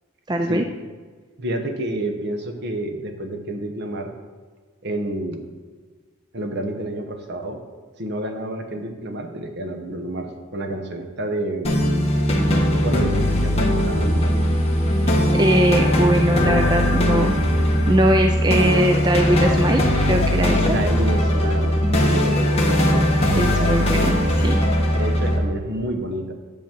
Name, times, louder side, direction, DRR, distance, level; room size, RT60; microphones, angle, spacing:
voice 1, 0.3-0.6 15.3-17.3 17.9-20.7 23.3-24.6, right 1 dB, 20° right, 4 dB, 0.4 m, -21 dB
voice 2, 1.4-4.1 4.8-5.5 6.3-7.6 8.0-11.9 12.7-14.4 20.6-23.8 24.9-26.3, right 1 dB, 50° right, 5 dB, 1.0 m, -29 dB
sound 1, 11.6-25.4, equal, 30° left, 1.4 m, -19 dB
10.5 x 4.0 x 7.4 m, 1.5 s
head